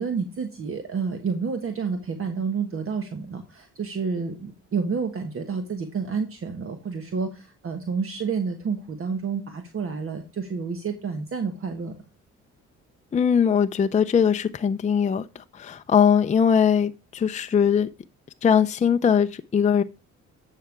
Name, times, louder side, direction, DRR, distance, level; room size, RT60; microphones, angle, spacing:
voice 1, 0.0-11.9, right 5 dB, 45° right, 1.3 m, -29 dB
voice 2, 13.1-17.9 18.4-19.8, left 7 dB, 25° left, 0.5 m, -21 dB
9.2 x 5.7 x 4.6 m
cardioid pair, 90°, 30 cm